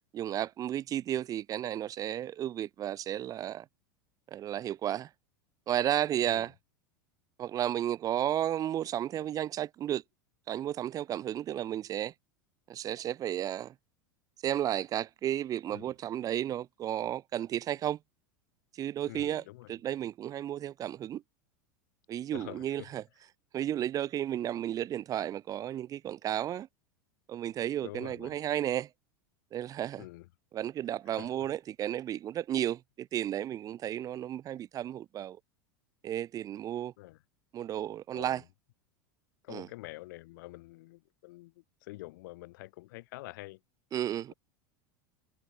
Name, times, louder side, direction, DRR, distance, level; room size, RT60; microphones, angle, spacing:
voice 1, 0.1-3.7 4.3-5.1 5.7-6.5 7.4-10.0 10.5-12.1 12.7-13.7 14.4-18.0 18.7-19.4 19.7-21.2 22.1-23.0 23.5-26.7 27.3-28.9 29.5-30.0 30.5-35.4 36.0-36.9 37.5-38.4 39.5-39.7 43.9-44.3, right 11 dB, 35° right, 0.6 m, -33 dB
voice 2, 19.1-19.7 22.3-22.9 27.8-28.3 30.0-30.3 31.1-31.5 37.0-37.2 38.1-38.5 39.4-43.6, left 20 dB, 70° left, 0.9 m, -47 dB
hypercardioid pair, 105°, 11 cm